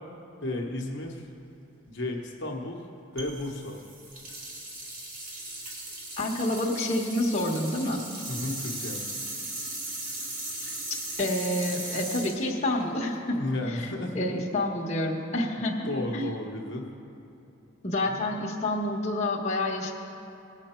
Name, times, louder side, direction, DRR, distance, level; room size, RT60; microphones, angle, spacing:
voice 1, 0.4-1.3 1.9-2.8 3.1-3.8 8.3-9.0 13.4-14.1 15.9-16.9 18.0-18.2, left 1 dB, 55° left, -1 dB, 1.0 m, -33 dB
sound 1, 3.2-13.3, right 2 dB, 90° right, 2.1 m, -37 dB
voice 2, 6.2-8.1 11.2-13.9 14.1-16.3 17.8-19.9, left 1 dB, 30° left, -3 dB, 1.1 m, -28 dB
18.5 x 6.8 x 4.4 m, 2.9 s
head